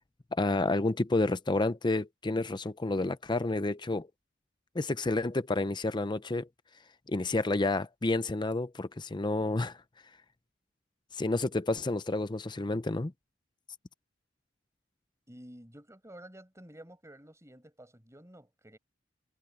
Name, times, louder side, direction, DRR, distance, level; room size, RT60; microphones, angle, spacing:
voice 1, 0.3-4.1 4.7-6.5 7.1-9.8 11.1-13.1, left 2 dB, 25° left, 0.6 m, -30 dB
voice 2, 15.3-18.8, right 1 dB, 15° right, 7.6 m, -51 dB
head